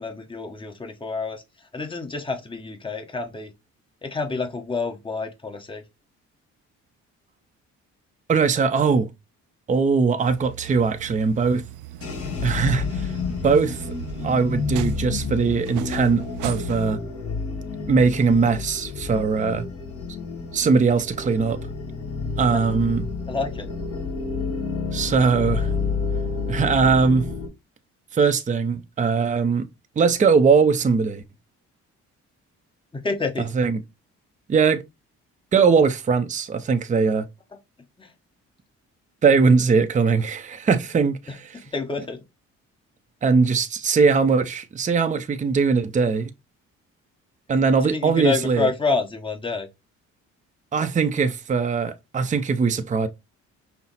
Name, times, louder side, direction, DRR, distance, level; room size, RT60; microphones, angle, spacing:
voice 1, 0.0-1.4 1.7-3.5 4.0-5.8 23.3-23.7 32.9-33.5 38.0-38.1 41.7-42.2 47.5-49.7, left 4 dB, 15° left, 1.0 m, -28 dB
voice 2, 8.3-9.1 9.7-11.6 12.4-13.1 13.4-13.9 14.2-17.0 17.9-19.6 20.5-21.6 22.4-23.0 24.9-25.7 26.5-27.3 28.1-29.7 30.0-31.2 33.5-33.8 34.5-34.8 35.5-37.3 39.2-41.6 43.2-46.3 47.5-48.7 50.7-53.1, right 5 dB, 25° right, 0.5 m, -20 dB
sound 1, 10.3-16.9, right 13 dB, 85° right, 0.5 m, -38 dB
sound 2, 12.0-27.5, left 5 dB, 50° left, 1.5 m, -30 dB
5.5 x 2.0 x 4.0 m
cardioid pair, 90°, 30 cm